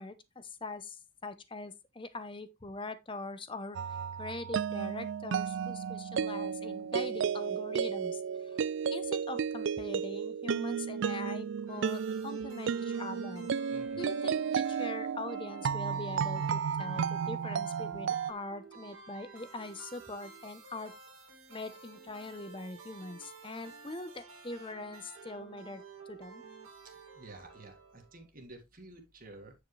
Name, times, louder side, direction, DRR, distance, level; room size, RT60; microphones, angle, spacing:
voice 1, 0.0-8.6 8.9-13.5 13.9-20.9 21.5-26.4, left 2 dB, 25° left, 0.7 m, -43 dB
sound 1, 3.7-18.3, right 7 dB, 60° right, 0.3 m, -33 dB
sound 2, 11.7-28.3, right 4 dB, 85° right, 2.3 m, -52 dB
voice 2, 13.7-14.0 27.1-29.5, right 2 dB, 40° right, 1.9 m, -51 dB
9.2 x 5.1 x 3.2 m
head